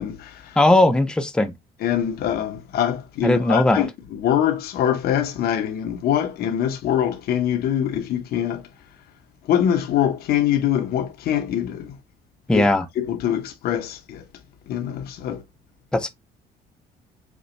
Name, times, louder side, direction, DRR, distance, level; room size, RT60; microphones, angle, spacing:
voice 1, 0.0-0.6 1.8-8.7 9.5-12.0 12.5-12.7 13.0-14.2 14.7-15.4, left 10 dB, 65° left, 0.8 m, -24 dB
voice 2, 0.6-1.5 3.2-3.8 12.5-12.8 15.9-16.1, left 1 dB, 5° left, 0.5 m, -18 dB
5.1 x 2.2 x 3.1 m
cardioid pair, 110°, 17 cm